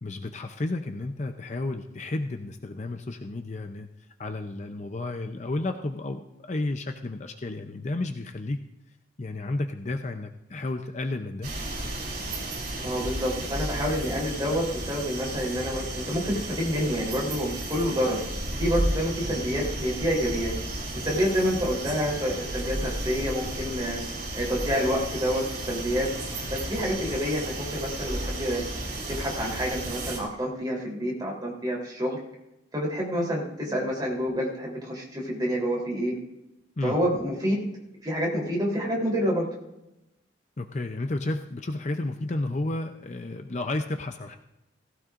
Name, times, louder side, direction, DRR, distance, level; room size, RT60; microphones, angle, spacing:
voice 1, 0.0-3.9 4.2-8.6 9.2-11.5 33.7-33.9 36.8-37.0 40.6-44.4, left 2 dB, 35° left, 6 dB, 0.6 m, -32 dB
sound 1, 11.4-30.2, right 1 dB, 50° right, 3.9 m, -33 dB
voice 2, 12.8-18.2 18.6-20.5 20.9-24.0 24.3-26.1 26.5-28.6 29.1-32.2 32.7-36.1 36.8-37.6 38.0-39.5, equal, 20° right, -3 dB, 3.5 m, -28 dB
18.0 x 16.0 x 2.5 m, 0.92 s
head